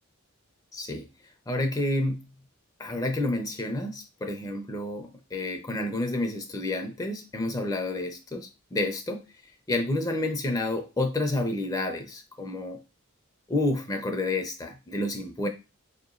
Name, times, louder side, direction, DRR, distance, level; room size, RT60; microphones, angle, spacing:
voice 1, 0.7-1.1 1.5-2.3 2.8-9.2 9.7-12.8 13.5-15.5, left 2 dB, 15° left, 5 dB, 0.4 m, -29 dB
4.3 x 2.9 x 2.4 m, 0.28 s
head